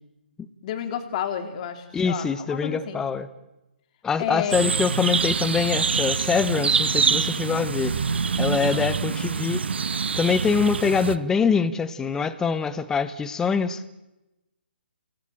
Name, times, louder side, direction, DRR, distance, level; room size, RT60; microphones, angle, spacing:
voice 1, 0.6-3.0 4.2-4.7 8.5-9.3, left 9 dB, 35° left, 3.6 m, -31 dB
voice 2, 1.9-3.3 4.0-7.9 8.4-9.6 10.2-13.8, left 5 dB, 10° left, 1.2 m, -24 dB
sound 1, 4.5-11.2, right 5 dB, 70° right, 1.3 m, -25 dB
29.5 x 18.0 x 9.0 m
hypercardioid pair, 145°, 6 cm